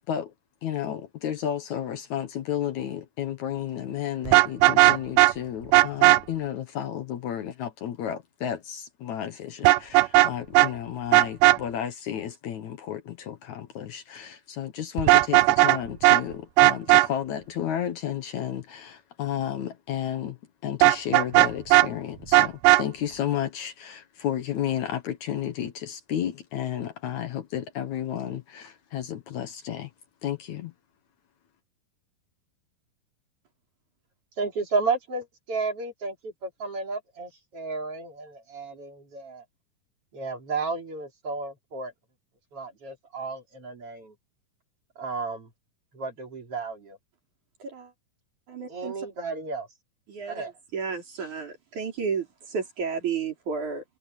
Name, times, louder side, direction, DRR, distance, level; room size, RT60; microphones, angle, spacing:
voice 1, 0.6-20.4 20.6-29.9 30.2-30.7, left 10 dB, 65° left, 2.3 m, -32 dB
Vehicle horn car horn honking, 4.3-5.3 5.7-6.2 9.6-10.3 10.5-10.7 11.1-11.6 15.0-16.2 16.6-17.1 20.8-21.9 22.3-22.8, right 19 dB, 80° right, 2.1 m, -16 dB
voice 2, 34.4-39.4 40.1-41.9 42.5-44.1 45.0-45.5 45.9-47.0 48.7-49.7 50.3-50.5, right 4 dB, 40° right, 4.4 m, -32 dB
voice 3, 47.6-47.9 48.5-49.0 50.1-53.8, right 5 dB, 60° right, 5.9 m, -32 dB
omnidirectional pair, 3.9 m